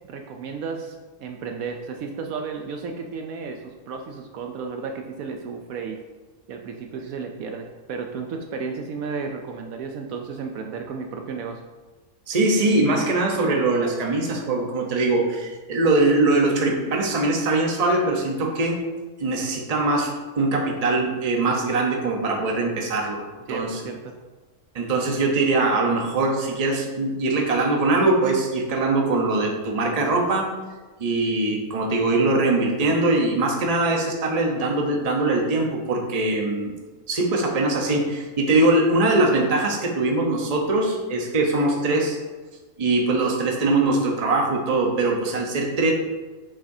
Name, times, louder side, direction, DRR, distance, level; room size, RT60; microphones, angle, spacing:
voice 1, 0.1-1.0 1.2-6.0 6.5-11.6 23.5-24.2, right 5 dB, 70° right, 3 dB, 1.0 m, -33 dB
voice 2, 12.3-18.8 19.2-23.2 23.5-23.8 24.7-30.5 31.0-36.7 37.1-42.2 42.8-45.9, right 2 dB, 30° right, 0 dB, 0.8 m, -22 dB
7.1 x 5.8 x 2.7 m, 1.3 s
omnidirectional pair, 1.6 m